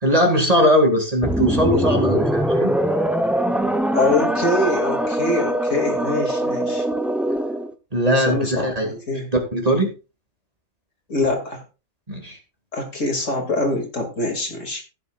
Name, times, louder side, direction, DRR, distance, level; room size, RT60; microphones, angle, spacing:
voice 1, 0.0-2.7 7.9-9.0 9.3-9.9 12.1-12.4, equal, 25° right, 3 dB, 2.4 m, -19 dB
sound 1, 1.2-7.7, right 1 dB, ahead, 0.8 m, -22 dB
voice 2, 3.9-6.9 8.1-9.3 11.1-11.6 12.7-14.8, left 2 dB, 60° left, 2 dB, 3.1 m, -24 dB
15.5 x 9.5 x 2.5 m, 0.31 s
omnidirectional pair, 1.5 m